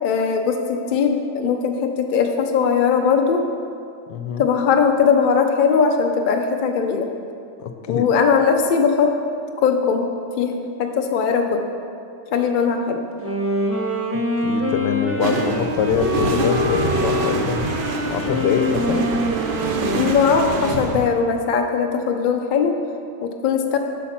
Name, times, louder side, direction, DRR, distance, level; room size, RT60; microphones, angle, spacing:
voice 1, 0.0-3.4 4.4-7.1 7.9-9.2 9.6-11.7 12.3-13.0 19.9-22.8 23.2-23.8, left 6 dB, 60° left, 4 dB, 0.5 m, -19 dB
voice 2, 4.1-4.5 7.6-8.1 14.1-17.6 18.1-19.1, left 7 dB, 85° left, 8 dB, 1.3 m, -24 dB
Wind instrument woodwind instrument, 13.1-20.8, left 1 dB, 15° right, 0.5 m, -25 dB
sound 1, 15.2-21.1, right 3 dB, 75° right, 0.5 m, -26 dB
8.4 x 6.1 x 5.8 m, 2.4 s
omnidirectional pair, 1.8 m